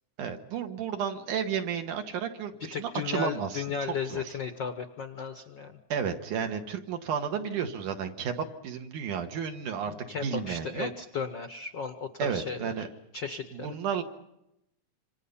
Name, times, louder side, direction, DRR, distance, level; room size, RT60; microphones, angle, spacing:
voice 1, 0.2-4.4 5.9-9.9 10.2-10.9 12.2-12.9 13.5-14.0, right 7 dB, 80° right, 5 dB, 3.1 m, -32 dB
voice 2, 2.7-5.8 9.9-12.9 13.1-13.7, left 5 dB, 75° left, 8 dB, 1.0 m, -35 dB
27.0 x 26.0 x 5.6 m, 0.85 s
omnidirectional pair, 3.5 m